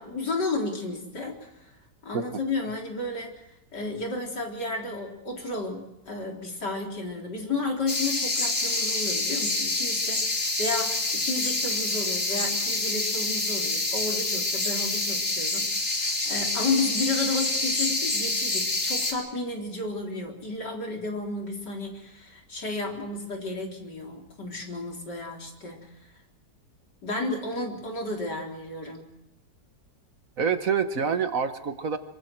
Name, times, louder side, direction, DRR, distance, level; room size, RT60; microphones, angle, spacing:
voice 1, 0.0-1.5 2.0-3.4 3.7-25.9 27.0-29.0, left 3 dB, 80° left, 0 dB, 4.5 m, -32 dB
sound 1, 7.9-19.1, left 2 dB, 40° left, 3.1 m, -27 dB
voice 2, 30.4-32.0, right 6 dB, 55° right, 9 dB, 1.6 m, -26 dB
26.0 x 24.5 x 4.6 m, 0.93 s
omnidirectional pair, 1.8 m